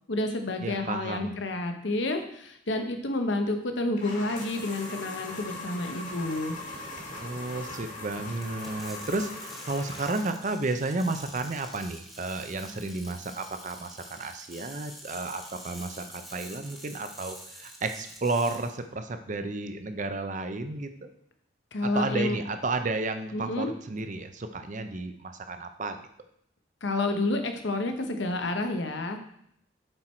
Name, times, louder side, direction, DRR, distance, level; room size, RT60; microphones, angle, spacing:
voice 1, 0.1-6.6 21.7-22.4 23.3-23.7 26.8-29.2, left 2 dB, 65° left, 6 dB, 0.9 m, -29 dB
voice 2, 0.6-1.3 7.2-21.1 21.8-26.0, right 3 dB, 40° right, 8 dB, 0.6 m, -32 dB
sound 1, 4.0-10.5, left 2 dB, 40° left, 1.8 m, -40 dB
sound 2, 8.4-18.7, equal, ahead, 1.2 m, -46 dB
7.7 x 4.6 x 4.4 m, 0.70 s
head